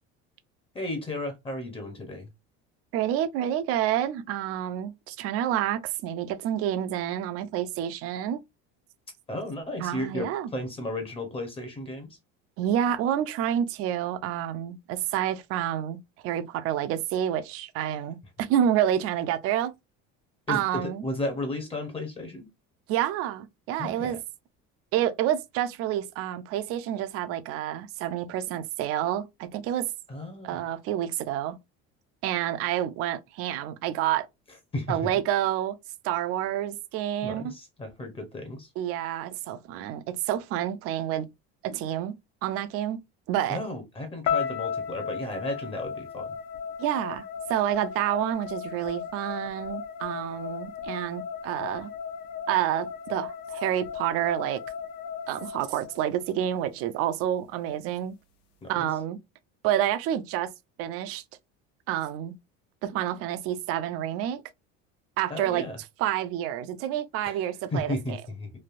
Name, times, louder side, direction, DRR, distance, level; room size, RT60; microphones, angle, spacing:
voice 1, 0.7-2.3 9.3-12.1 20.5-22.5 23.8-24.2 30.1-30.6 34.7-35.0 37.2-38.7 43.5-46.3 58.6-58.9 65.3-65.8 67.2-67.4 67.7-68.5, left 1 dB, 20° left, 0.7 m, -34 dB
voice 2, 2.9-8.4 9.8-10.5 12.6-19.7 20.5-21.0 22.9-24.2 24.9-29.9 30.4-31.6 32.2-34.3 34.9-35.8 36.0-37.5 38.8-41.3 41.6-42.1 42.4-43.0 43.3-43.6 46.8-51.9 52.5-54.6 55.3-58.1 58.7-59.2 59.6-60.5 60.8-61.2 61.9-62.3 62.8-64.4 65.2-65.6 66.0-68.2, right 11 dB, 50° right, 0.5 m, -28 dB
sound 1, 44.3-56.4, left 7 dB, 70° left, 0.8 m, -35 dB
3.2 x 2.6 x 2.4 m
cardioid pair, 160°, 30 cm